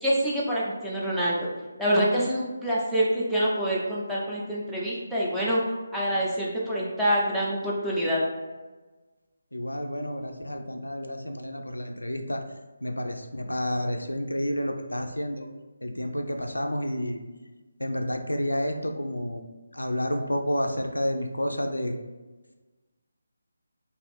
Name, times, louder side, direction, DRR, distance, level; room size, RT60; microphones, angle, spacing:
voice 1, 0.0-1.4 1.8-5.6 5.9-8.2, equal, ahead, -8 dB, 0.5 m, -26 dB
voice 2, 9.5-12.4 12.8-15.5 15.8-17.2 17.8-19.4 19.7-22.0, equal, 85° left, 4 dB, 0.3 m, -30 dB
2.6 x 2.4 x 3.2 m, 1.2 s
figure-of-eight pair, 150°, 0 cm